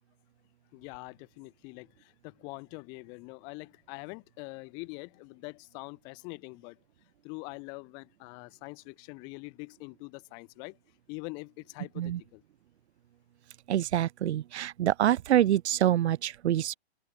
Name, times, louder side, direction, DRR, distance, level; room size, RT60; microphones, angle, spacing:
voice 1, 0.7-6.8 7.2-10.8 11.1-12.4, left 32 dB, 10° left, 0.8 m, -44 dB
voice 2, 13.7-16.8, right 12 dB, 80° right, 0.5 m, -26 dB
open air
hypercardioid pair, 165°, 33 cm